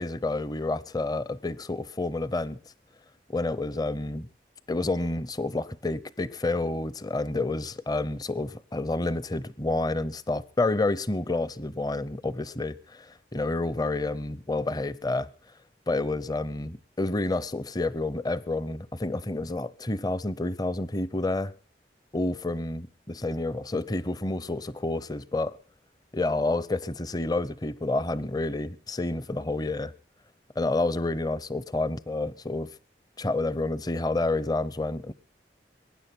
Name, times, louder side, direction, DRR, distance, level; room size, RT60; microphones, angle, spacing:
voice 1, 0.0-2.6 3.3-4.3 4.7-15.3 15.9-21.5 22.1-25.6 26.1-29.9 30.6-32.7 33.2-35.1, left 2 dB, 20° left, 0.7 m, -29 dB
22.5 x 9.9 x 6.0 m
head